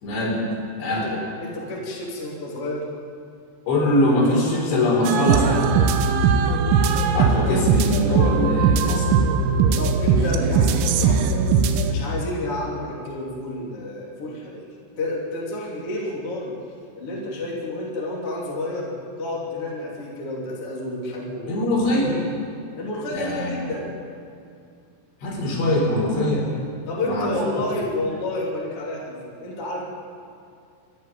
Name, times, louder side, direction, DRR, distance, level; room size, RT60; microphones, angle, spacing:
voice 1, 0.0-0.4 0.8-1.1 3.7-5.6 7.1-9.2 21.5-22.2 23.1-23.5 25.2-26.5 27.0-27.4, left 1 dB, 60° left, -2 dB, 6.1 m, -22 dB
voice 2, 0.9-2.9 9.8-11.4 11.9-14.6 15.0-16.5 17.0-18.9 19.2-21.6 22.8-23.9 26.9-29.8, left 1 dB, 30° left, -4 dB, 3.4 m, -30 dB
sound 1, 5.0-11.9, right 5 dB, 90° right, 3.8 m, -19 dB
28.0 x 11.0 x 9.0 m, 2.3 s
omnidirectional pair, 5.8 m